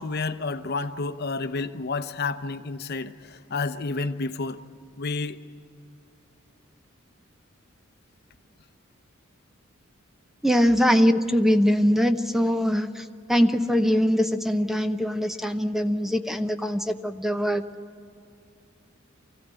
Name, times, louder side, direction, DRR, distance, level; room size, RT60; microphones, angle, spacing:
voice 1, 0.0-4.6 5.0-5.4, left 3 dB, 50° left, 0.8 m, -30 dB
voice 2, 10.4-13.0 13.3-17.6, equal, ahead, 0.7 m, -22 dB
24.5 x 15.5 x 9.0 m
head